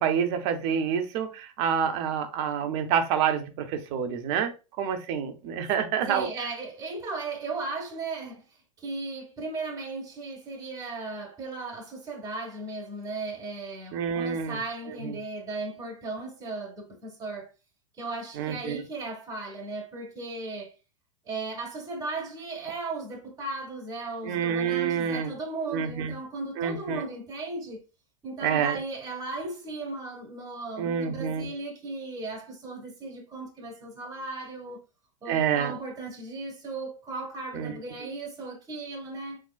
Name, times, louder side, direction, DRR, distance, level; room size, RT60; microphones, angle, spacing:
voice 1, 0.0-4.5 4.8-6.3 13.9-14.6 15.0-15.2 18.4-18.8 24.2-25.3 25.7-26.1 26.6-27.0 28.4-28.8 30.8-31.5 35.3-35.7 37.5-37.7, right 8 dB, 50° right, 0.7 m, -27 dB
voice 2, 6.1-8.5 8.8-17.5 18.0-20.7 21.2-27.8 28.2-34.8 35.2-39.4, right 3 dB, 20° right, 1.1 m, -36 dB
3.7 x 3.0 x 2.3 m
hypercardioid pair, 95°, 19 cm